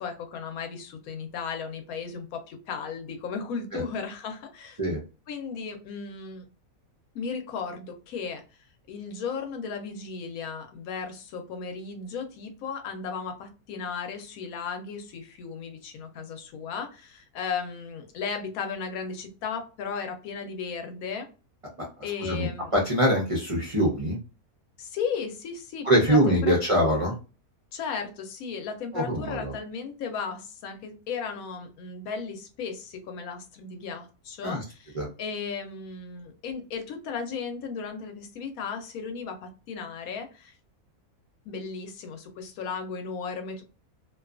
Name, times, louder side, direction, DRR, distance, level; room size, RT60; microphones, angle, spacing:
voice 1, 0.0-4.8 5.3-6.4 7.1-8.4 8.9-21.3 22.0-22.7 24.8-26.6 27.7-40.6 41.5-43.6, left 5 dB, 75° left, 5 dB, 1.0 m, -35 dB
voice 2, 22.2-24.2 25.8-27.1 28.9-29.5 34.4-34.6 34.9-35.1, right 1 dB, 50° right, -2 dB, 0.3 m, -23 dB
2.5 x 2.3 x 2.4 m, 0.33 s
omnidirectional pair, 1.6 m